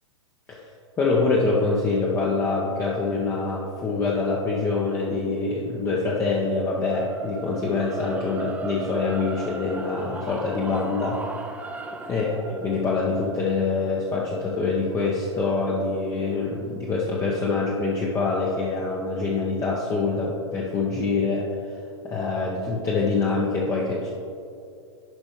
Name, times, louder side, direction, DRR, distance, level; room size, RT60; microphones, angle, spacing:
voice 1, 1.0-11.6 12.1-21.7 22.0-24.2, left 3 dB, 20° left, -3 dB, 0.8 m, -25 dB
sound 1, 6.7-16.9, right 2 dB, 10° right, 0.5 m, -37 dB
10.5 x 5.2 x 3.2 m, 2.5 s
figure-of-eight pair, 100°, 16 cm